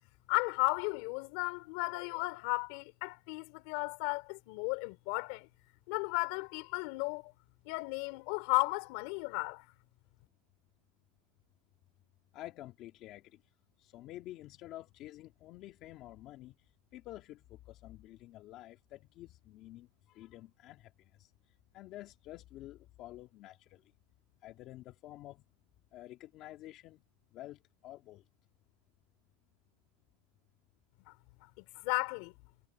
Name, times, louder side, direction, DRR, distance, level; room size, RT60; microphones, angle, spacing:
voice 1, 0.3-5.5 5.9-7.3 7.7-9.6 31.6-32.3, left 27 dB, 55° left, 3.2 m, -34 dB
voice 2, 12.3-13.4 13.8-16.5 16.9-20.9 21.2-21.3 21.7-23.8 24.4-25.4 25.9-27.0 27.3-28.2, left 15 dB, 40° left, 2.3 m, -49 dB
supercardioid pair, 150°, 0 cm